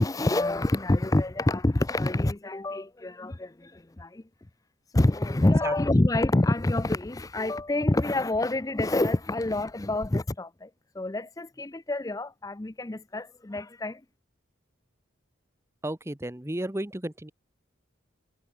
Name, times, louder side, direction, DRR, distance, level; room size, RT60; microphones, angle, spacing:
voice 1, 0.0-4.2 4.9-14.0, left 2 dB, 15° left, 0.5 m, -26 dB
voice 2, 15.8-17.3, right 1 dB, 15° right, 0.8 m, -33 dB
head